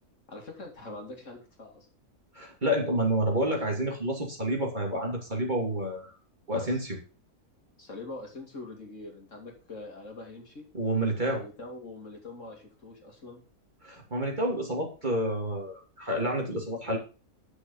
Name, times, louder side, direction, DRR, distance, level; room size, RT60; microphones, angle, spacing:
voice 1, 0.3-1.9 6.5-6.8 7.8-10.7 11.3-13.4, left 2 dB, 55° left, 1 dB, 2.7 m, -43 dB
voice 2, 2.3-6.2 6.5-7.0 10.7-11.4 13.8-17.0, right 1 dB, 30° right, -1 dB, 3.0 m, -29 dB
9.9 x 6.5 x 5.5 m, 0.36 s
omnidirectional pair, 1.6 m